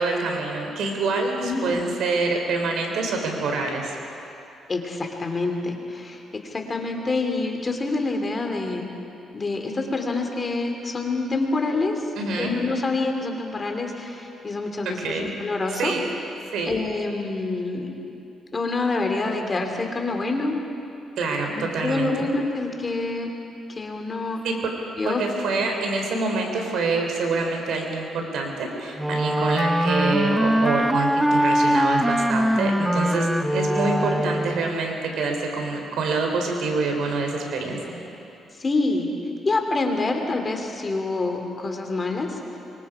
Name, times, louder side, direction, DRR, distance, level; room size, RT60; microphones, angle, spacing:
voice 1, 0.0-4.0 12.2-12.5 14.8-15.3 15.7-16.0 16.5-16.8 21.2-22.3 24.4-24.5 25.0-38.0, right 3 dB, 75° right, 2 dB, 3.8 m, -26 dB
voice 2, 1.4-1.8 4.7-6.2 6.5-8.9 9.3-12.0 12.4-15.9 16.6-17.9 18.5-20.6 21.5-23.3 23.7-24.4 25.0-25.2 38.6-39.1 39.4-42.4, left 3 dB, 30° left, 3 dB, 2.9 m, -26 dB
Wind instrument woodwind instrument, 29.0-34.7, equal, 5° right, 0.7 m, -22 dB
25.5 x 23.5 x 5.0 m, 2.8 s
cardioid pair, 90°, 0 cm